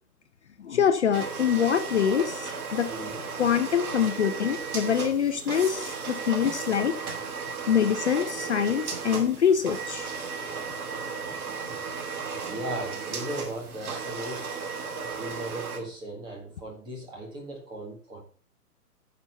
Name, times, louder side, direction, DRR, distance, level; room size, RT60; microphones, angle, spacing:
voice 1, 0.6-2.9 3.4-6.9 7.7-10.1, left 8 dB, 45° left, 8 dB, 0.7 m, -25 dB
sound 1, 1.1-15.8, right 5 dB, 65° right, 2.7 m, -35 dB
voice 2, 2.9-3.8 7.4-7.6 10.5-11.0 11.3-11.6 12.3-14.9 15.2-18.2, right 1 dB, 10° right, -1 dB, 1.7 m, -39 dB
9.6 x 5.8 x 5.5 m, 0.43 s
hypercardioid pair, 160°, 48 cm